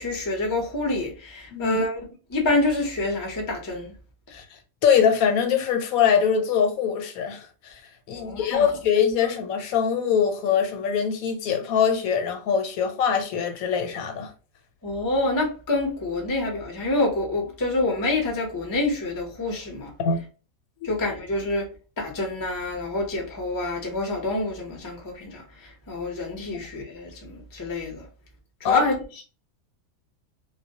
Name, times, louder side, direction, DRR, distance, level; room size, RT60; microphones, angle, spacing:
voice 1, 0.0-2.0 2.3-3.9 8.1-8.7 14.8-19.9 20.8-21.7 22.0-28.0 28.6-29.0, left 2 dB, 25° left, 0.4 m, -27 dB
voice 2, 4.8-7.7 8.1-14.3 20.0-20.2 20.8-20.9 28.6-28.9, left 7 dB, 85° left, 1.1 m, -23 dB
2.2 x 2.1 x 2.6 m
omnidirectional pair, 1.5 m